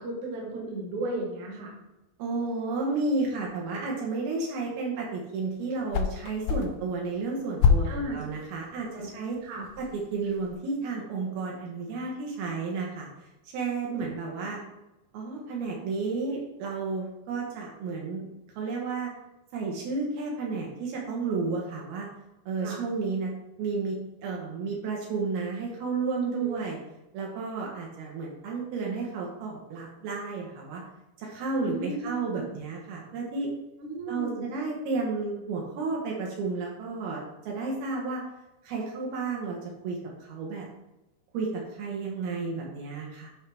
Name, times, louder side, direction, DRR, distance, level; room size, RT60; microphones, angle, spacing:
voice 1, 0.0-1.7 7.8-8.2 8.7-9.1 9.4-9.7 13.9-14.1 22.6-22.8 26.3-26.6 31.6-32.2 33.8-34.4, right 2 dB, 55° right, -1 dB, 2.5 m, -34 dB
voice 2, 2.2-9.4 9.8-13.1 13.4-14.6 15.1-18.3 18.6-19.1 19.5-22.1 22.5-23.3 23.6-26.8 27.1-30.8 31.2-33.5 34.1-38.2 38.6-40.7 41.3-43.3, right 4 dB, 70° right, -2 dB, 2.9 m, -32 dB
sound 1, 5.5-10.5, left 6 dB, 90° left, 1.9 m, -29 dB
11.5 x 4.5 x 3.4 m, 0.98 s
omnidirectional pair, 4.7 m